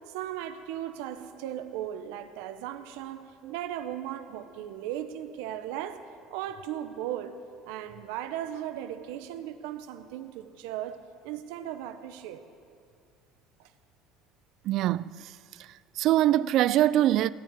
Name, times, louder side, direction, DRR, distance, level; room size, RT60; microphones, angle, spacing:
voice 1, 0.1-7.4 7.7-11.0 11.2-12.4 13.6-13.7, right 11 dB, 90° right, 0.8 m, -37 dB
voice 2, 14.6-15.3 16.0-17.3, right 13 dB, 55° right, 0.3 m, -23 dB
19.0 x 7.4 x 9.5 m
cardioid pair, 135°, 0 cm